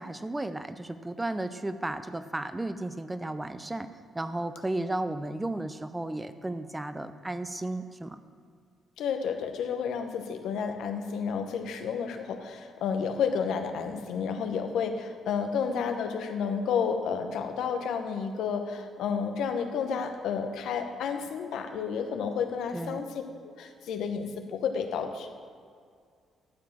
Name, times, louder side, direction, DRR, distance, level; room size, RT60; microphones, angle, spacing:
voice 1, 0.0-3.9 4.1-8.2 22.7-23.0, right 2 dB, 15° right, 11 dB, 0.6 m, -34 dB
voice 2, 9.0-23.1 23.6-25.3, left 6 dB, 80° left, 6 dB, 0.9 m, -31 dB
12.5 x 4.9 x 7.2 m, 2.1 s
cardioid pair, 90°, 0 cm